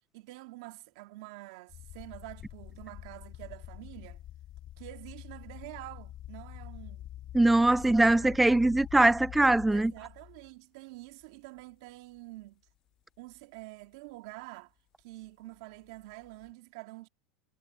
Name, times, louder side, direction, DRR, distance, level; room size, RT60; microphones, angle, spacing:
voice 1, 0.1-4.2 4.8-7.1 7.6-8.5 9.7-12.6 13.2-14.7 15.0-17.1, right 20 dB, 60° right, 2.3 m, -47 dB
sound 1, 1.7-10.5 11.2-11.6 12.2-12.3 15.8-16.5, left 12 dB, 35° left, 2.7 m, -46 dB
voice 2, 7.3-9.9, right 2 dB, 5° right, 0.3 m, -22 dB
supercardioid pair, 160°, 3 cm